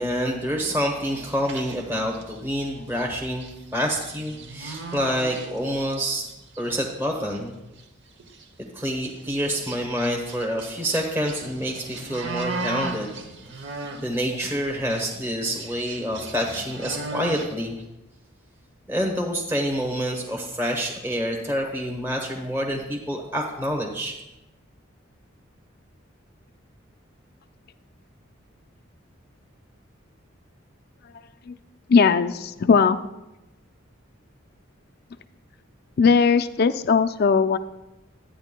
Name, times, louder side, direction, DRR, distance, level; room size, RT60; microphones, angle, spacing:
voice 1, 0.0-6.3 6.6-7.6 8.7-13.1 13.6-13.7 14.0-17.8 18.9-24.1, equal, 10° right, 0 dB, 0.9 m, -27 dB
sound 1, 1.0-2.4 2.9-3.1 3.4-6.0 6.2-6.7 7.3-7.4 7.8-7.9 8.2-8.4 9.1-14.3 14.6-17.6, right 3 dB, 60° right, 0.9 m, -37 dB
voice 2, 31.9-33.0 36.0-37.6, left 5 dB, 50° left, 10 dB, 0.4 m, -18 dB
12.5 x 9.2 x 2.2 m, 0.97 s
head